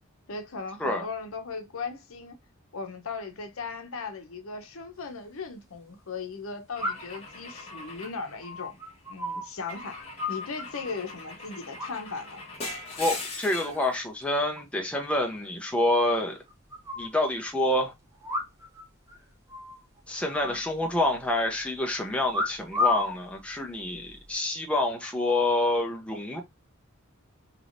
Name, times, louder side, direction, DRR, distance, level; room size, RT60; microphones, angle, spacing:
voice 1, 0.3-2.4 2.7-8.8 9.1-10.0 10.3-12.4 20.4-20.6, left 4 dB, 70° left, 0.8 m, -37 dB
sound 1, 5.0-5.1 6.8-7.3 7.7-9.7 10.0-11.0 11.8-12.3 12.6-13.0 13.4-13.9 14.2-14.3 14.5-14.6 14.9-15.0 15.3-15.4 16.1-17.1 18.2-18.8 19.1-19.2 19.5-19.8 20.3-21.2 22.3-23.2 23.9-24.3, left 3 dB, 15° right, 1.0 m, -33 dB
Car / Engine / Glass, 6.8-9.0 9.7-13.9, left 3 dB, 30° left, 1.1 m, -41 dB
voice 2, 13.0-16.4 17.0-17.9 20.1-26.4, left 1 dB, 5° left, 0.6 m, -27 dB
3.4 x 2.9 x 2.5 m
head